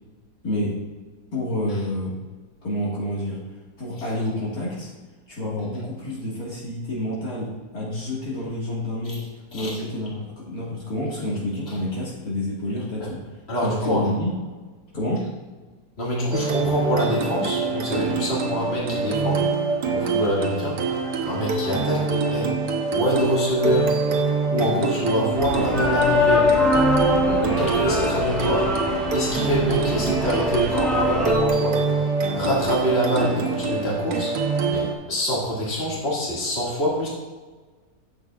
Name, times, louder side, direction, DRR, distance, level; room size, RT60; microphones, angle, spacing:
voice 1, 1.3-2.1 2.6-3.4 3.8-4.9 5.3-9.3 9.5-13.2 13.6-14.4 14.9-15.2, left 1 dB, 70° left, -6 dB, 2.3 m, -28 dB
voice 2, 13.5-14.0 16.0-19.4 19.9-22.5 22.9-23.9 24.5-26.6 27.2-28.7 29.1-31.8 32.3-34.3 34.7-37.1, equal, 40° left, -6 dB, 2.3 m, -25 dB
sound 1, 16.3-34.9, right 4 dB, 85° right, 1.6 m, -25 dB
sound 2, 25.4-31.3, left 2 dB, ahead, 1.0 m, -23 dB
10.0 x 7.1 x 2.4 m, 1.3 s
omnidirectional pair, 1.7 m